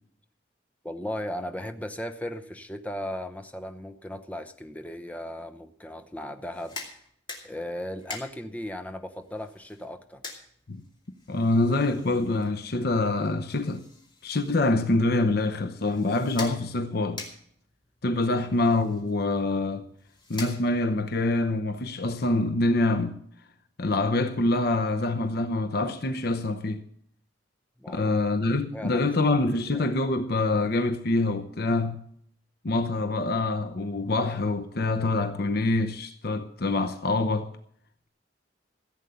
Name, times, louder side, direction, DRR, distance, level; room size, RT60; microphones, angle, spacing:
voice 1, 0.8-6.8 7.4-10.2 18.1-18.4 27.8-28.1 28.7-29.1 29.5-29.9, left 1 dB, 10° left, 0.8 m, -37 dB
sound 1, 6.4-21.0, left 3 dB, 25° left, 2.5 m, -46 dB
voice 2, 11.3-13.8 14.2-17.2 18.0-19.8 20.3-23.2 23.8-26.8 27.9-32.0 32.6-37.5, left 2 dB, 60° left, 0.8 m, -25 dB
15.0 x 8.1 x 6.9 m
head